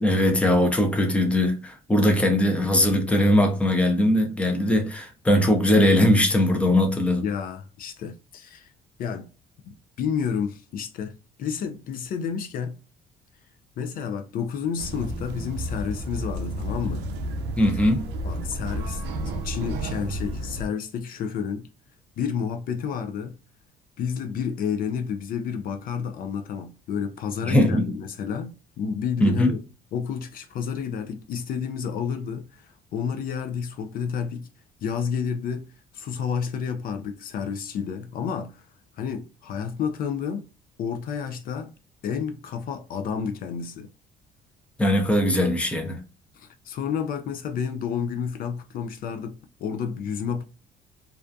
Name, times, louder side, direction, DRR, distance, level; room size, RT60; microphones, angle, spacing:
voice 1, 0.0-7.2 17.6-18.0 27.4-27.9 29.2-29.5 44.8-46.0, left 1 dB, 5° left, 0.5 m, -20 dB
voice 2, 7.2-8.7 9.0-9.3 10.0-11.1 11.4-12.8 13.8-17.0 18.2-21.7 22.2-23.4 24.0-29.6 29.9-34.5 34.8-35.7 35.9-38.7 39.0-40.5 40.8-41.7 42.0-43.9 46.3-50.4, left 7 dB, 60° left, 0.4 m, -30 dB
sound 1, 14.8-20.7, right 1 dB, 85° right, 0.4 m, -31 dB
2.4 x 2.2 x 2.5 m
cardioid pair, 110°, 17 cm